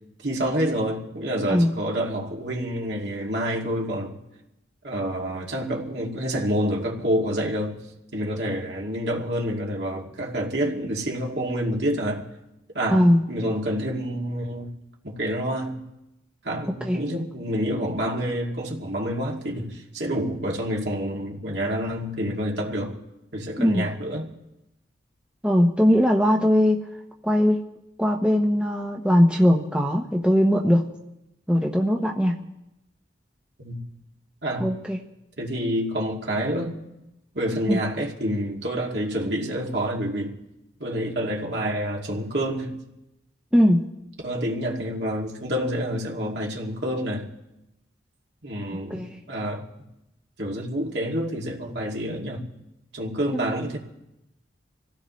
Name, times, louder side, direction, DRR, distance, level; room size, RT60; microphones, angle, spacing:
voice 1, 0.2-4.2 4.8-7.8 8.1-12.2 12.7-14.7 15.0-15.9 16.4-23.0 23.3-24.3 33.6-33.8 34.4-34.7 35.4-36.7 37.3-40.4 40.8-42.8 44.2-47.3 48.4-49.6 50.4-52.5 52.9-53.8, equal, 65° right, -2 dB, 2.6 m, -28 dB
voice 2, 23.6-23.9 25.4-26.8 27.2-27.6 28.0-30.8 31.5-32.4 34.6-35.0 37.7-37.8 43.5-43.8 48.9-49.2 53.3-53.4, equal, 5° right, 0 dB, 1.0 m, -20 dB
26.5 x 16.5 x 3.2 m, 0.91 s
head